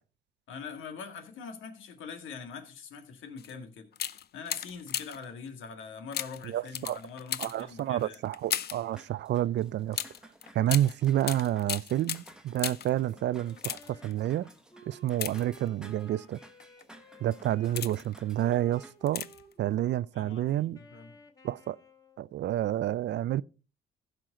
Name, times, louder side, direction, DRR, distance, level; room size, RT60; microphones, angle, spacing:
voice 1, 0.5-3.9 4.3-8.2 20.1-21.3, left 5 dB, 80° left, 1.9 m, -43 dB
sound 1, 3.4-3.5 3.9-5.3 6.1-8.9 9.9-13.0 13.5-14.1 15.1-15.9 16.6-16.8 17.4-18.2 19.1-19.5 19.8-19.9, left 10 dB, 55° left, 0.6 m, -36 dB
voice 2, 6.5-7.0 7.4-10.0 10.5-14.5 14.9-16.4 17.2-19.3 19.6-20.8 21.4-21.8 22.2-23.4, right 13 dB, 65° right, 0.4 m, -29 dB
sound 2, 8.9-18.9, right 1 dB, 5° right, 1.3 m, -55 dB
Wind instrument woodwind instrument, 13.0-17.7 18.4-22.3, equal, 20° left, 2.4 m, -55 dB
15.5 x 6.0 x 3.8 m
cardioid pair, 90°, 20 cm